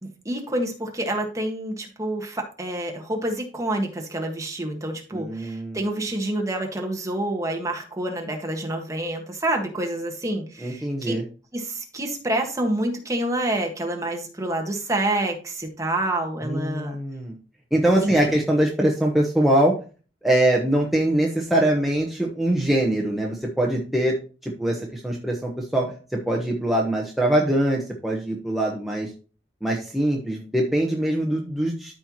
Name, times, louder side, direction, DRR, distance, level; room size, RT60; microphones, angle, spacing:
voice 1, 0.0-11.2 11.5-17.0 18.0-18.3, right 1 dB, 20° right, 1 dB, 1.6 m, -28 dB
voice 2, 5.1-5.9 10.6-11.2 16.4-17.3 17.7-19.7 20.2-24.1 24.4-25.9 26.3-29.1 29.6-32.0, right 1 dB, ahead, -2 dB, 1.1 m, -23 dB
13.0 x 4.5 x 3.0 m, 0.36 s
head